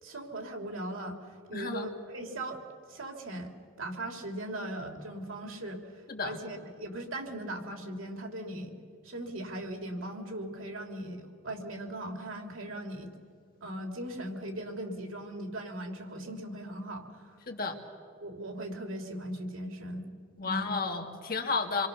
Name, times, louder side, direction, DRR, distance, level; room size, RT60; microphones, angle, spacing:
voice 1, 0.0-2.6 2.9-3.5 3.8-8.7 9.0-13.1 13.6-17.3 18.2-20.1 20.4-20.8, right 1 dB, 90° right, 2 dB, 3.5 m, -39 dB
voice 2, 1.5-1.9 6.1-6.4 17.5-17.8 20.4-21.9, left 4 dB, 45° left, 3 dB, 2.2 m, -32 dB
27.5 x 23.0 x 6.9 m, 2.3 s
head